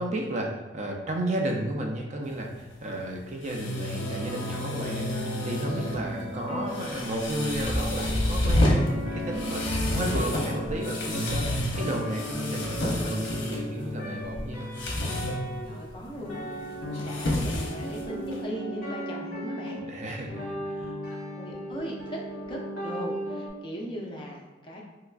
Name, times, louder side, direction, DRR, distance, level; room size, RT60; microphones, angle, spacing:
voice 1, 0.0-14.7 19.9-20.9, right 1 dB, 35° right, 2 dB, 0.4 m, -33 dB
sound 1, 2.2-18.4, left 1 dB, 70° left, 0.7 m, -31 dB
sound 2, 4.0-23.5, equal, 50° left, 1.2 m, -35 dB
voice 2, 15.6-16.5 16.9-19.8 21.1-22.2 22.5-24.8, equal, 25° left, -1 dB, 0.5 m, -38 dB
3.4 x 2.9 x 2.4 m, 1.2 s
head